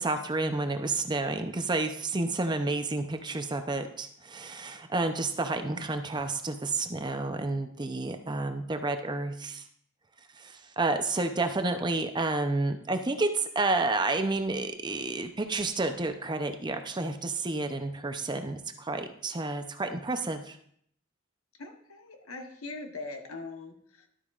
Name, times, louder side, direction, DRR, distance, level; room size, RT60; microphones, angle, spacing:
voice 1, 0.0-9.6 10.4-20.6, right 2 dB, 20° right, 7 dB, 0.6 m, -30 dB
voice 2, 21.6-24.1, left 3 dB, 80° left, 5 dB, 1.1 m, -41 dB
12.0 x 8.6 x 2.4 m, 0.65 s
head